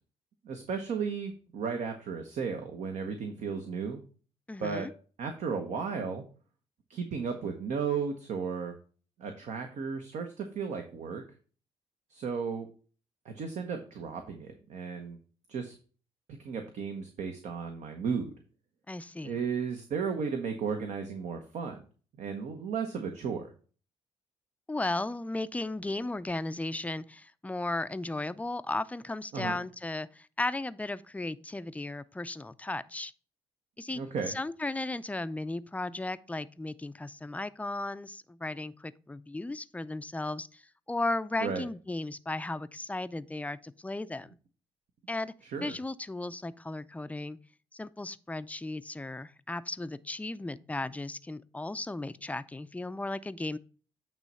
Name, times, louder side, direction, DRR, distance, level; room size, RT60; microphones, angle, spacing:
voice 1, 0.4-4.0 4.6-4.9 5.2-6.2 6.9-8.7 9.2-11.2 12.1-12.7 13.2-15.2 15.5-15.7 16.4-18.3 19.2-21.8 22.2-23.5 29.3-29.6 33.9-34.3 41.4-41.6 45.4-45.8, right 6 dB, 60° right, 1.0 m, -34 dB
voice 2, 4.5-4.9 18.9-19.4 24.7-33.1 33.8-34.0 34.3-40.6 40.9-44.4 45.1-45.3 45.6-47.4 47.7-53.6, left 2 dB, 10° left, 0.5 m, -35 dB
8.9 x 3.1 x 5.5 m
hypercardioid pair, 50°, 13 cm